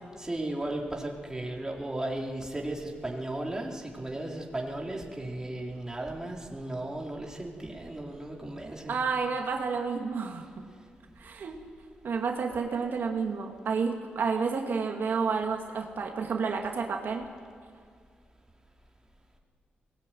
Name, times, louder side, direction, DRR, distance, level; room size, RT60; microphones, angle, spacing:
voice 1, 0.2-9.0, right 1 dB, 15° right, 0 dB, 4.0 m, -35 dB
voice 2, 8.9-10.5 11.2-11.6 12.0-17.3, right 5 dB, 70° right, 2 dB, 2.3 m, -30 dB
22.5 x 19.5 x 9.3 m, 2.1 s
cardioid pair, 75°, 4 cm